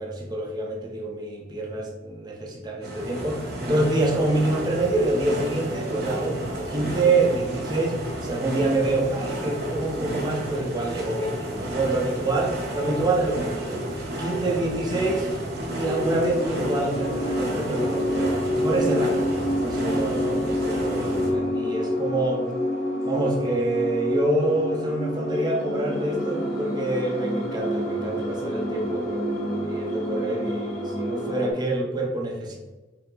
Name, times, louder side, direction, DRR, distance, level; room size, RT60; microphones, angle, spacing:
voice 1, 0.0-15.3 15.6-19.3 19.6-22.4 23.0-32.6, right 2 dB, 20° right, -1 dB, 0.6 m, -26 dB
sound 1, 2.8-21.3, right 1 dB, 55° right, 0.8 m, -32 dB
sound 2, 15.9-31.5, equal, 50° left, 1.1 m, -28 dB
5.5 x 2.0 x 3.7 m, 1.2 s
head